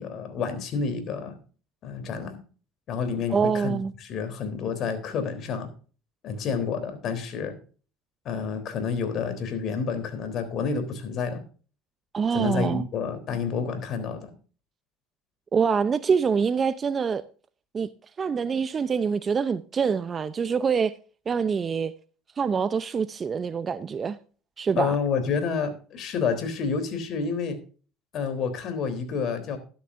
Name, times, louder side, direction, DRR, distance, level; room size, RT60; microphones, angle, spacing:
voice 1, 0.0-1.4 1.8-2.4 2.9-5.7 6.2-7.6 8.3-11.4 12.3-14.3 24.8-27.6 28.1-29.6, left 5 dB, 55° left, 3.6 m, -29 dB
voice 2, 3.3-3.9 12.1-12.8 15.5-17.2 17.7-17.9 18.2-20.9 21.3-21.9 22.4-24.2 24.6-25.0, right 6 dB, 35° right, 0.7 m, -25 dB
13.0 x 12.0 x 2.6 m
supercardioid pair, 85°, 0 cm